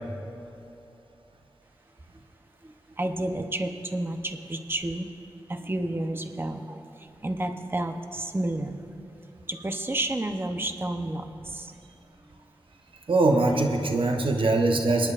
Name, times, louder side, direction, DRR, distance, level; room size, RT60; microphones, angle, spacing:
voice 1, 2.6-5.1 5.5-8.8 9.5-11.8, right 1 dB, 25° right, 6 dB, 0.8 m, -31 dB
voice 2, 13.1-15.1, right 2 dB, 75° right, 3 dB, 1.0 m, -22 dB
25.0 x 10.5 x 2.5 m, 2.8 s
wide cardioid pair, 55°, 9 cm